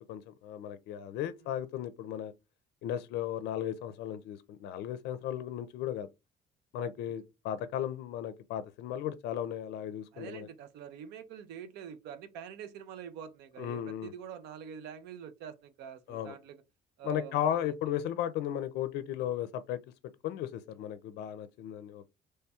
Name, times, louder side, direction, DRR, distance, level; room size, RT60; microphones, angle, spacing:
voice 1, 0.0-2.3 2.8-6.1 6.7-10.5 13.6-14.1 16.1-16.4 17.0-19.8 20.2-22.1, left 10 dB, 80° left, 0.4 m, -35 dB
voice 2, 10.1-16.6 17.0-18.0, right 8 dB, 85° right, 0.7 m, -46 dB
3.2 x 2.3 x 4.2 m
cardioid pair, 110°, 17 cm